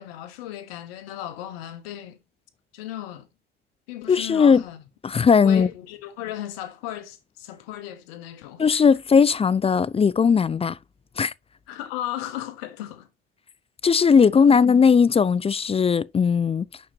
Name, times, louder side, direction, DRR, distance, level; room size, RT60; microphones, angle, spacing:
voice 1, 0.0-2.2 2.7-3.3 3.9-4.8 5.4-8.8 11.7-13.1 14.5-14.6, left 12 dB, 75° left, 1.2 m, -36 dB
voice 2, 4.1-4.6 5.0-5.7 8.6-10.8 11.2-11.3 13.8-16.7, left 6 dB, 20° left, 0.4 m, -18 dB
7.0 x 6.4 x 2.8 m
hypercardioid pair, 60°, 30 cm